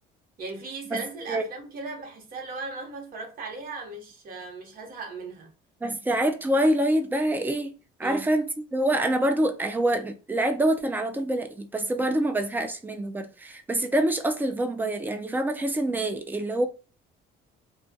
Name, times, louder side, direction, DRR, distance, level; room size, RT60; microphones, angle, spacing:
voice 1, 0.4-5.5 8.0-8.3, right 3 dB, 50° right, 0.9 m, -37 dB
voice 2, 5.8-7.7 8.0-16.7, right 1 dB, 10° right, 0.4 m, -26 dB
2.2 x 2.2 x 2.6 m
cardioid pair, 125°, 19 cm